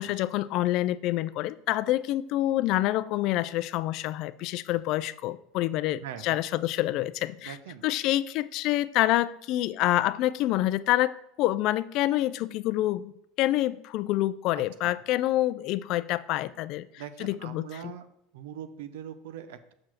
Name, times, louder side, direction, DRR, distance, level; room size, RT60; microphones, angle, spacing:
voice 1, 0.0-7.6 7.8-13.1 13.4-16.9 17.2-17.7, left 15 dB, 55° left, 16 dB, 0.4 m, -27 dB
voice 2, 6.0-6.4 7.4-7.8 14.8-15.0 17.0-18.1 18.3-19.7, right 9 dB, 85° right, 11 dB, 0.7 m, -42 dB
6.3 x 4.7 x 5.8 m, 0.78 s
supercardioid pair, 125°, 0 cm